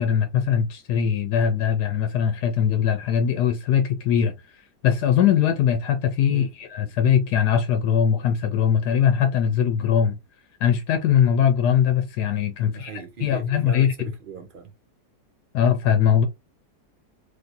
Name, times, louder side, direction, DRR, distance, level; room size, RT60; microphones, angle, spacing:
voice 1, 0.0-4.3 4.8-10.2 10.6-13.9 15.5-16.2, left 8 dB, 85° left, 1.2 m, -21 dB
voice 2, 12.6-14.7, right 6 dB, 80° right, 0.4 m, -38 dB
3.4 x 2.5 x 2.7 m
omnidirectional pair, 1.7 m